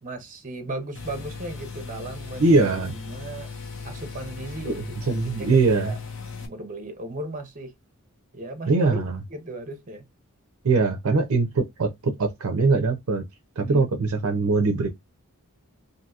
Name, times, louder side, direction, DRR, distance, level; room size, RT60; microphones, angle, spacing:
voice 1, 0.0-3.5 3.8-4.8 5.1-6.0 6.4-7.7 8.3-9.0 9.3-10.0 13.6-14.3, right 2 dB, 40° right, 0.7 m, -36 dB
sound 1, 0.9-6.5, left 4 dB, 65° left, 0.7 m, -38 dB
voice 2, 2.4-2.9 4.6-5.9 8.7-9.2 10.6-13.2 13.6-14.9, right 3 dB, 70° right, 0.5 m, -22 dB
2.7 x 2.7 x 2.3 m
head